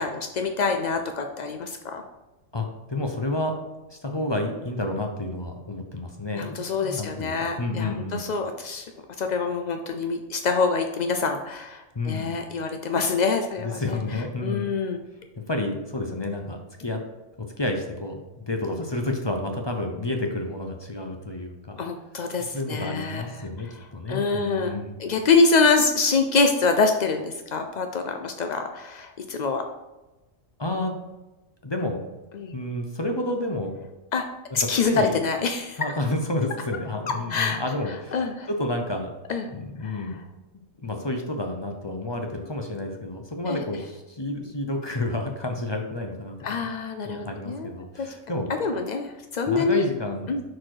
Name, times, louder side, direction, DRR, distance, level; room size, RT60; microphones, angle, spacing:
voice 1, 0.0-2.0 6.3-8.9 9.2-14.0 14.4-15.0 21.8-23.5 24.1-29.7 32.3-32.5 34.1-34.3 34.5-35.8 37.3-37.6 38.1-38.5 39.3-39.4 39.8-40.1 43.5-43.6 46.4-47.7 48.0-48.1 48.6-49.9 50.3-50.4, left 4 dB, 80° left, 6 dB, 0.4 m, -25 dB
voice 2, 2.5-3.5 3.9-8.3 11.9-12.4 13.6-14.7 15.5-17.0 17.4-21.8 22.5-24.9 30.6-30.9 31.6-32.0 32.5-33.7 34.6-35.2 35.8-39.1 39.5-40.2 40.8-46.7 47.0-48.5 49.5-50.3, left 2 dB, 30° left, 3 dB, 0.5 m, -30 dB
6.3 x 4.2 x 4.7 m, 1.0 s
omnidirectional pair, 1.4 m